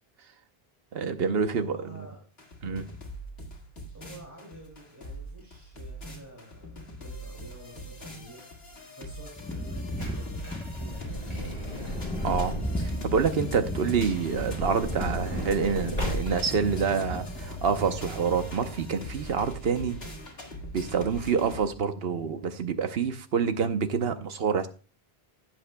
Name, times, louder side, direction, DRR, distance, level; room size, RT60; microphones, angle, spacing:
voice 1, 0.9-1.8 2.6-2.9 12.2-20.0 20.7-24.7, right 6 dB, 70° right, 1.1 m, -27 dB
voice 2, 1.5-2.2 3.9-8.4 8.9-11.4, right 1 dB, 15° right, 2.6 m, -49 dB
sound 1, 2.4-21.7, equal, 75° left, 2.2 m, -41 dB
sound 2, 9.4-19.5, equal, 5° left, 0.8 m, -37 dB
Truck / Door, 9.9-13.1 14.1-16.7 17.4-17.5 17.6-17.8, left 1 dB, 40° left, 4.7 m, -35 dB
16.0 x 7.4 x 2.2 m
omnidirectional pair, 1.0 m